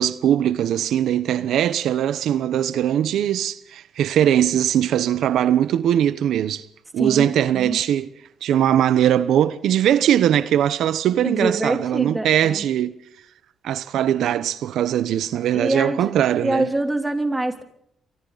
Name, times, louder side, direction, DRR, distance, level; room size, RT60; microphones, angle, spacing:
voice 1, 0.0-6.6 6.9-8.1 8.4-13.0 13.6-16.7, right 10 dB, 75° right, 1.0 m, -20 dB
voice 2, 7.0-7.8 11.2-12.6 15.5-16.1 16.4-17.6, right 2 dB, 10° right, 3.3 m, -25 dB
29.5 x 25.0 x 4.1 m
cardioid pair, 130°, 0 cm